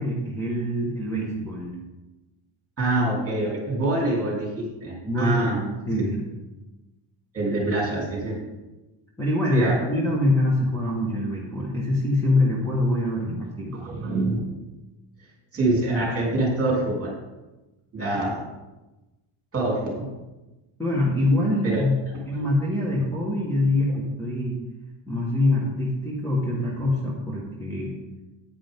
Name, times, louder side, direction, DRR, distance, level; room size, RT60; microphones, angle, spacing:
voice 1, 0.0-1.7 5.0-6.2 9.2-13.8 20.8-22.0 22.3-24.6 25.1-27.9, left 1 dB, 5° left, -5 dB, 1.6 m, -24 dB
voice 2, 2.8-5.6 7.3-8.4 9.5-9.8 13.8-14.4 15.5-17.1 17.9-18.4 19.5-20.1 21.6-21.8, right 2 dB, 30° right, -2 dB, 3.1 m, -25 dB
10.0 x 9.4 x 3.7 m, 1.1 s
cardioid pair, 175°, 47 cm